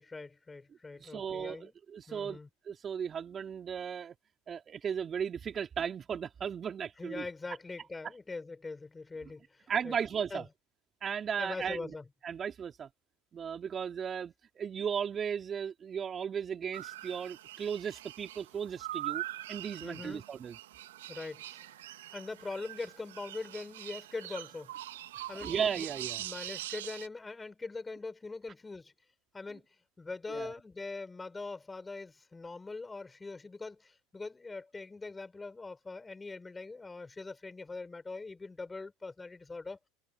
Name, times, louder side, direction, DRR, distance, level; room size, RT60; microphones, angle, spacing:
voice 1, 0.0-1.7 2.1-2.5 7.0-9.9 10.3-10.5 11.4-12.0 19.8-20.3 21.1-21.8 22.1-24.7 25.3-25.9 26.2-28.9 29.3-29.7 30.0-39.8, left 3 dB, 15° left, 6.2 m, -42 dB
voice 2, 1.0-2.4 2.7-4.1 4.5-7.3 9.7-10.4 11.0-11.9 12.2-12.9 13.3-19.2 19.5-20.6 25.4-26.2 30.3-30.5, right 7 dB, 30° right, 3.4 m, -36 dB
sound 1, 16.7-27.1, right 14 dB, 80° right, 2.0 m, -43 dB
hypercardioid pair, 90°, 0 cm